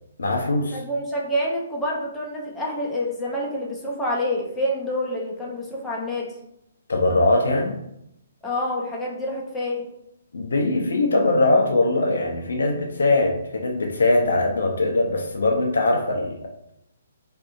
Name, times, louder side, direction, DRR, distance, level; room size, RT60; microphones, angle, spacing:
voice 1, 0.2-0.8 6.9-7.8 10.3-16.5, left 2 dB, 75° left, 2 dB, 0.5 m, -21 dB
voice 2, 0.7-6.3 8.4-9.9, left 1 dB, 10° left, -4 dB, 0.6 m, -27 dB
2.6 x 2.6 x 2.4 m, 0.78 s
figure-of-eight pair, 135°, 0 cm